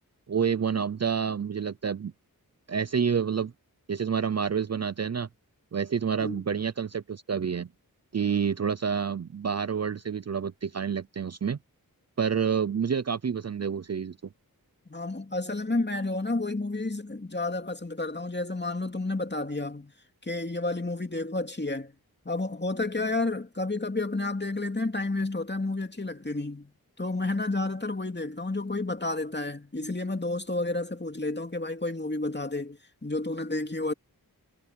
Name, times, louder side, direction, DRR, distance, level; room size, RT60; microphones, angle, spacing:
voice 1, 0.3-2.1 2.7-3.5 3.9-5.3 5.7-7.7 8.1-11.6 12.2-14.2, right 7 dB, 45° right, 0.5 m, -28 dB
voice 2, 14.9-19.9 20.2-21.9 22.2-26.7 27.0-33.9, left 2 dB, 30° left, 2.6 m, -31 dB
wide cardioid pair, 55°, 37 cm